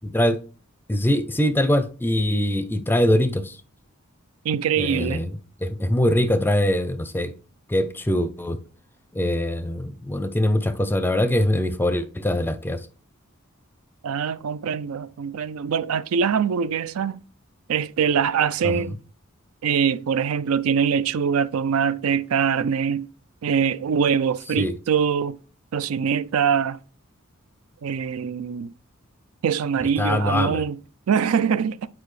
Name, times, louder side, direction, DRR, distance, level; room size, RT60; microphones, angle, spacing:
voice 1, 0.0-0.4 0.9-3.6 4.8-7.3 7.7-8.6 9.1-12.9 18.6-19.0 24.6-24.7 30.0-30.6, left 1 dB, 10° left, 0.5 m, -23 dB
voice 2, 4.4-5.2 14.0-17.2 17.7-19.0 19.6-23.1 23.4-25.4 25.7-26.8 27.8-28.7 29.4-30.8 31.1-31.9, right 7 dB, 80° right, 0.4 m, -23 dB
8.7 x 4.7 x 3.2 m
head